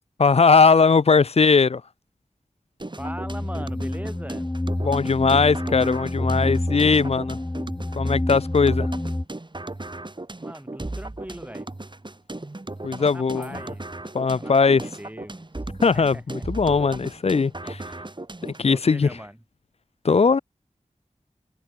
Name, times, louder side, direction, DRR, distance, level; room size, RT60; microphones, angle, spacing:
voice 1, 0.2-1.8 4.8-7.4 7.9-8.9 12.8-13.6 14.1-14.8 15.8-17.8 18.4-19.1 20.0-20.4, left 5 dB, 50° left, 0.4 m, -19 dB
sound 1, 2.8-18.8, right 2 dB, 35° right, 3.8 m, -37 dB
sound 2, 3.0-9.2, left 1 dB, 20° left, 1.2 m, -28 dB
voice 2, 3.0-4.5 10.4-11.7 13.0-13.8 14.4-15.6 15.9-16.4 18.6-19.4, right 1 dB, 10° right, 3.1 m, -40 dB
wide cardioid pair, 55°, 14 cm